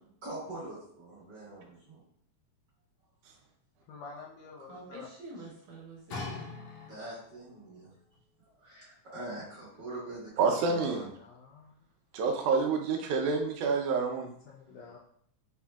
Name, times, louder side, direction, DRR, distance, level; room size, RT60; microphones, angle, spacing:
voice 1, 0.2-2.0 6.8-7.9 8.6-10.8, right 2 dB, 40° right, -9 dB, 2.0 m, -43 dB
voice 2, 3.9-5.1 10.9-11.7 14.4-15.0, left 4 dB, 85° left, -3 dB, 1.5 m, -48 dB
voice 3, 4.7-6.6, right 2 dB, 65° right, -5 dB, 2.2 m, -47 dB
sound 1, 6.1-7.4 8.1-8.2, left 3 dB, 70° left, 1.9 m, -41 dB
voice 4, 10.4-11.1 12.1-14.3, right 4 dB, 80° right, 3 dB, 1.9 m, -28 dB
5.7 x 2.5 x 2.3 m, 0.65 s
omnidirectional pair, 3.5 m